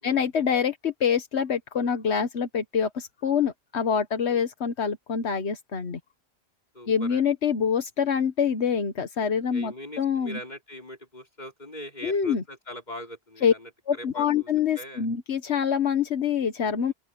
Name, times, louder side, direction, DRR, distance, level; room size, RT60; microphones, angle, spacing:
voice 1, 0.0-6.0 6.9-10.4 12.0-12.4 13.4-13.5 13.9-16.9, left 7 dB, 85° left, 1.4 m, -25 dB
voice 2, 6.7-7.2 9.5-14.5 14.7-15.1 16.9-17.0, equal, 40° left, 5.4 m, -41 dB
open air
omnidirectional pair, 1.1 m